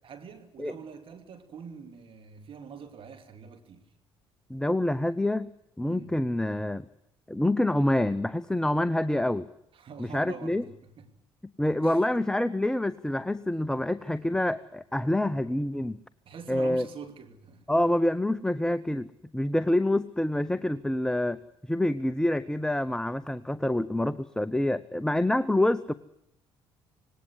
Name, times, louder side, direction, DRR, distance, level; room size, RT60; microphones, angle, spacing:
voice 1, 0.0-3.9 5.8-6.1 9.7-11.1 11.8-12.2 14.0-14.2 16.2-17.7, right 6 dB, 55° right, 2.7 m, -45 dB
voice 2, 4.5-5.5 5.8-6.8 7.3-9.5 10.0-10.6 11.6-16.0 16.5-16.9 17.7-21.4 21.7-25.9, left 1 dB, 5° left, 0.8 m, -27 dB
20.0 x 18.0 x 9.9 m
hypercardioid pair, 60°, 11 cm